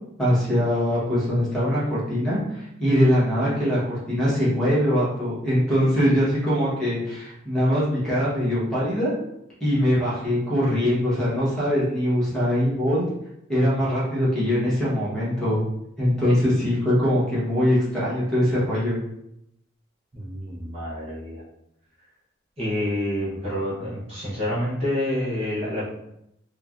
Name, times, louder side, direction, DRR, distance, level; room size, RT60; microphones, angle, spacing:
voice 1, 0.2-9.1 9.6-13.0 13.5-15.6 16.0-19.0, equal, 5° left, -9 dB, 1.0 m, -22 dB
voice 2, 20.1-21.4 22.6-25.9, left 1 dB, 30° right, -9 dB, 0.7 m, -28 dB
3.2 x 2.1 x 2.4 m, 0.80 s
head